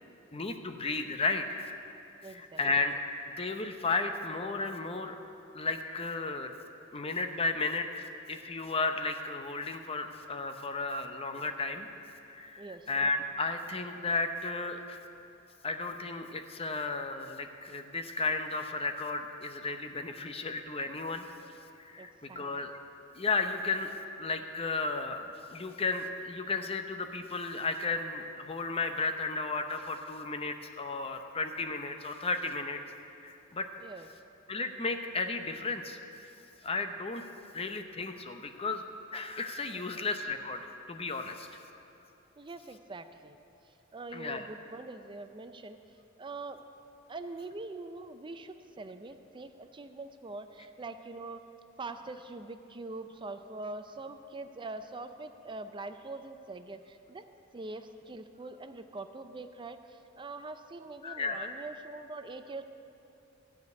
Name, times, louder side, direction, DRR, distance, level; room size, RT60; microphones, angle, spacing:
voice 1, 0.3-1.6 2.3-3.0 3.4-5.2 5.5-6.5 6.9-11.9 12.2-15.0 15.6-21.2 21.8-22.8 23.2-32.8 33.2-33.7 34.5-36.0 36.6-37.2 37.5-38.8 39.1-40.6 40.9-41.6 44.1-44.4 61.0-61.5, left 3 dB, 30° left, 6 dB, 0.7 m, -34 dB
voice 2, 2.2-2.6 12.6-12.9 22.0-22.6 33.8-34.1 39.7-40.0 42.4-43.4 43.9-45.8 46.2-46.6 47.1-51.4 51.8-57.2 57.5-62.6, right 3 dB, 25° right, 9 dB, 0.5 m, -43 dB
15.0 x 5.2 x 9.4 m, 2.8 s
head